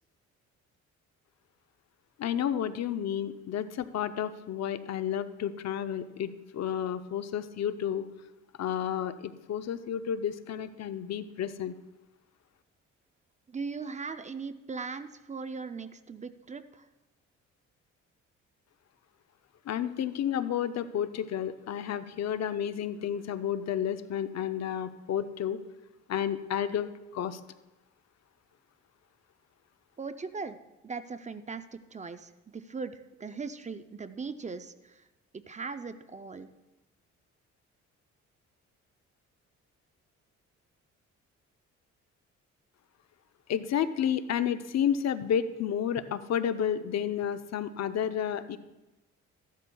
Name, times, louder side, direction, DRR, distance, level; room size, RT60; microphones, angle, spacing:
voice 1, 2.2-8.0 8.6-11.7 19.7-25.6 26.1-27.4 43.5-48.6, left 9 dB, 60° left, 11 dB, 0.6 m, -31 dB
voice 2, 13.5-16.9 30.0-30.6 30.8-35.1 35.3-36.5, right 4 dB, 25° right, 10 dB, 0.5 m, -39 dB
14.0 x 12.0 x 2.3 m, 1.0 s
cardioid pair, 90°, 30 cm